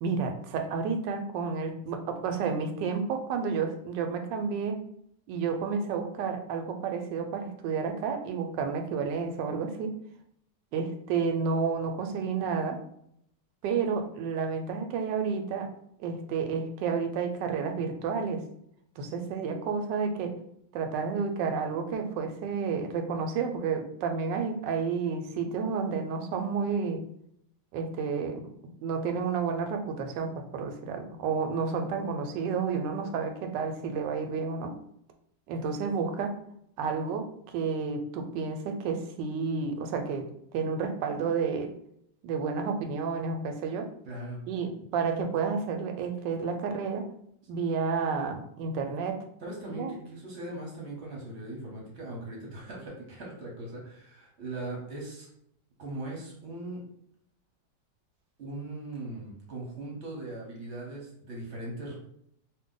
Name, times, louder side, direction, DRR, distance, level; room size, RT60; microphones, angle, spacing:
voice 1, 0.0-4.8 5.3-9.9 10.7-12.8 13.6-15.7 16.0-18.4 19.0-20.4 20.7-27.0 27.7-28.4 28.8-34.7 35.5-36.3 36.8-37.3 37.5-41.7 42.2-43.9 44.5-47.1 47.5-49.2 49.7-49.9, right 5 dB, 85° right, 5 dB, 1.2 m, -31 dB
voice 2, 44.0-44.4 49.4-55.3 55.8-56.8 58.4-62.0, right 2 dB, 50° right, -2 dB, 1.0 m, -39 dB
2.7 x 2.5 x 3.7 m, 0.71 s
omnidirectional pair, 1.9 m